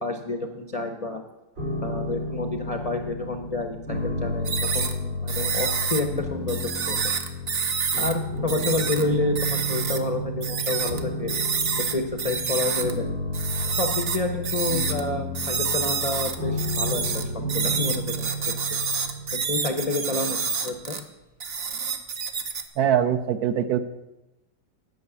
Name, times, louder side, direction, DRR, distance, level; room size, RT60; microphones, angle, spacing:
voice 1, 0.0-1.2 1.8-7.0 8.0-11.3 11.9-13.1 13.6-17.2 17.5-18.3 19.5-20.4 20.6-21.0, left 2 dB, 70° left, 5 dB, 0.3 m, -29 dB
sound 1, 1.6-20.5, left 1 dB, 90° right, 5.8 m, -32 dB
sound 2, 4.4-4.9 5.3-6.0 6.5-8.1 8.5-9.0 9.3-10.0 10.4-11.0 11.3-12.9 13.3-15.0 15.3-21.0 21.4-22.6, right 6 dB, 50° right, 0.7 m, -28 dB
voice 2, 22.8-23.8, right 9 dB, 70° right, 10 dB, 1.0 m, -22 dB
9.3 x 6.0 x 8.3 m, 0.97 s
omnidirectional pair, 1.9 m